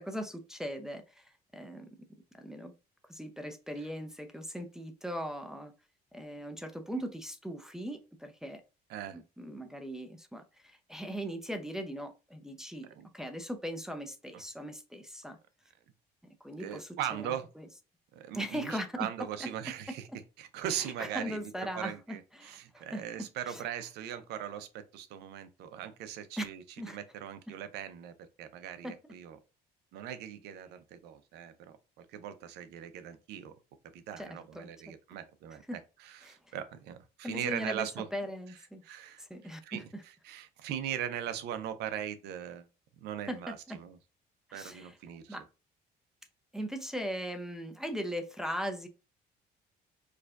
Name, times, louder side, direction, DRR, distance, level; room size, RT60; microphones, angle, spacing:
voice 1, 0.0-1.9 2.4-2.7 3.1-5.7 6.1-8.6 9.1-15.4 16.4-17.7 18.3-18.9 19.4-19.5 20.7-23.0 23.5-23.6 26.4-26.5 26.8-27.0 28.8-28.9 34.2-34.9 35.7-35.8 36.3-36.4 37.2-38.8 39.2-40.0 43.3-43.8 44.5-44.9 45.3-45.4 46.5-48.9, equal, 5° right, 0.5 m, -39 dB
voice 2, 16.6-17.5 18.1-20.1 20.4-29.4 29.9-33.6 33.9-38.1 38.8-39.2 39.6-42.7 43.0-44.0 44.5-45.4, right 10 dB, 80° right, 0.6 m, -40 dB
4.7 x 2.2 x 2.3 m
cardioid pair, 110°, 17 cm